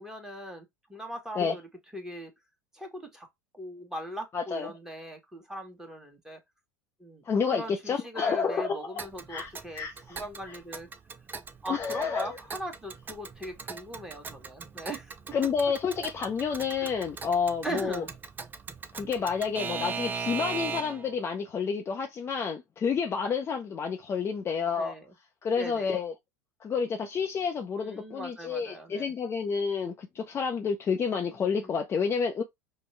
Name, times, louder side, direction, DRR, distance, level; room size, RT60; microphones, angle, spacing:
voice 1, 0.0-1.6 1.9-2.3 2.7-3.3 3.5-6.4 7.0-10.9 11.6-15.4 16.8-16.9 17.6-18.1 24.8-25.1 25.6-25.9 27.8-29.1 31.3-31.8, right 1 dB, 5° right, 1.5 m, -40 dB
voice 2, 4.3-4.7 7.3-10.2 11.7-12.4 15.3-18.0 18.9-24.9 25.4-26.1 26.6-32.4, left 6 dB, 25° left, 0.7 m, -30 dB
Alarm / Clock, 9.0-21.1, right 5 dB, 20° right, 0.5 m, -39 dB
5.2 x 2.2 x 3.3 m
figure-of-eight pair, 80°, 9 cm